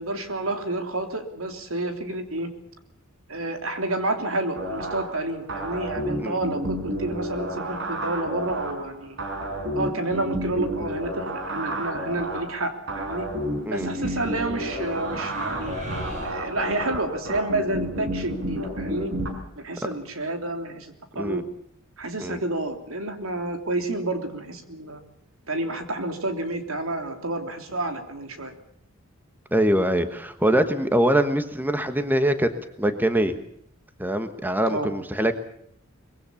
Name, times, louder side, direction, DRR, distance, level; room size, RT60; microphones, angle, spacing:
voice 1, 0.0-2.5 3.3-9.2 9.7-13.3 13.7-15.8 16.2-19.1 19.6-21.5 22.0-25.0 25.5-28.5 34.7-34.9, right 2 dB, 75° right, 6 dB, 3.2 m, -29 dB
sound 1, 4.6-19.3, equal, 60° right, 5.4 m, -31 dB
sound 2, 13.8-17.1, equal, 35° right, 7.8 m, -39 dB
voice 2, 29.5-32.5 32.8-33.4 34.0-35.3, right 1 dB, 10° right, 8 dB, 1.3 m, -23 dB
24.0 x 21.5 x 7.1 m, 0.67 s
head